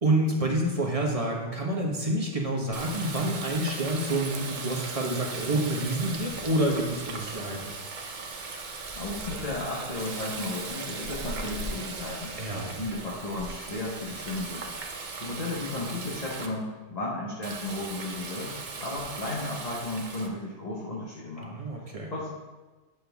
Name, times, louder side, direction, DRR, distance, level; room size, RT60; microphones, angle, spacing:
voice 1, 0.0-7.7 12.4-12.7 21.4-22.1, right 1 dB, 30° right, -1 dB, 1.2 m, -28 dB
Water tap faucet, 2.7-16.5 17.4-20.3, right 3 dB, 45° right, 0.8 m, -38 dB
voice 2, 8.9-14.7 15.2-21.6 21.8-22.3, left 2 dB, 35° left, -5 dB, 1.2 m, -34 dB
8.8 x 6.1 x 3.5 m, 1.2 s
omnidirectional pair, 1.2 m